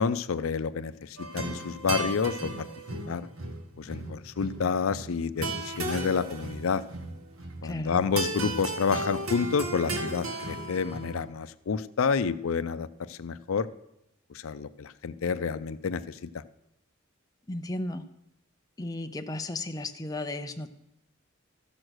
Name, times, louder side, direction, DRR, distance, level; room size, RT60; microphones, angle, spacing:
voice 1, 0.0-2.7 3.1-3.3 3.8-6.8 7.6-13.7 14.3-16.4, left 5 dB, 85° left, 13 dB, 0.5 m, -29 dB
sound 1, 1.2-11.2, right 2 dB, 85° right, 1.6 m, -35 dB
voice 2, 7.6-8.0 17.5-18.0 18.8-20.7, left 2 dB, 20° left, 6 dB, 0.6 m, -34 dB
14.0 x 6.4 x 6.3 m, 0.86 s
head